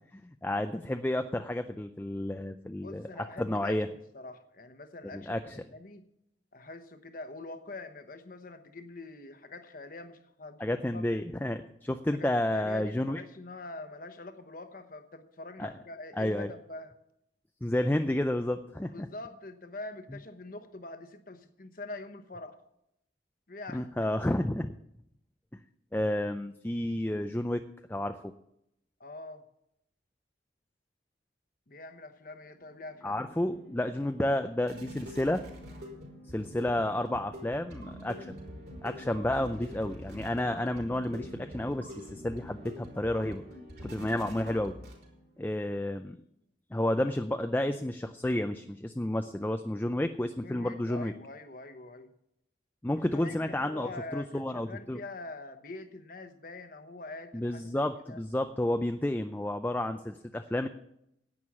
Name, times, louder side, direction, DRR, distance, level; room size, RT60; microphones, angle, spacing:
voice 1, 0.2-3.1 3.4-3.9 5.1-5.6 10.6-13.2 15.6-15.7 16.2-16.5 17.6-19.1 23.7-24.7 25.9-27.6 27.9-28.3 33.0-35.4 36.3-38.4 38.8-43.4 43.8-44.7 45.4-46.2 46.7-51.1 52.8-55.0 57.3-60.7, left 1 dB, 10° left, 7 dB, 0.4 m, -31 dB
voice 2, 2.8-6.1 6.5-11.1 12.1-16.9 18.8-22.6 23.5-24.1 29.0-29.4 31.7-33.3 50.4-52.1 52.9-58.2, left 2 dB, 45° left, 9 dB, 1.0 m, -44 dB
sound 1, 32.6-45.4, equal, 55° right, 3.9 m, -46 dB
11.0 x 8.8 x 7.3 m, 0.79 s
head